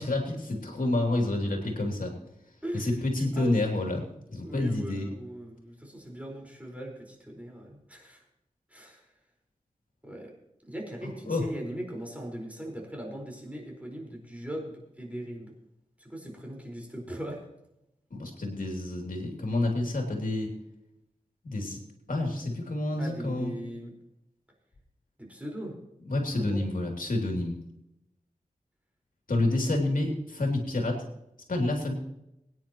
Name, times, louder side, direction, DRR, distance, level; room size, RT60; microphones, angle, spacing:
voice 1, 0.0-2.1 2.7-4.0 4.3-5.1 11.3-11.4 18.1-20.5 21.4-21.8 22.1-23.5 26.0-27.6 29.3-31.0 31.5-31.9, left 2 dB, 75° left, 1 dB, 3.0 m, -28 dB
voice 2, 2.6-3.0 3.3-3.6 4.4-8.2 8.7-9.0 10.0-10.3 10.7-15.5 16.0-17.4 23.0-23.9 25.2-25.8 26.3-26.6, equal, 10° right, -1 dB, 4.8 m, -39 dB
24.0 x 9.8 x 3.1 m, 0.86 s
wide cardioid pair, 80°, 14 cm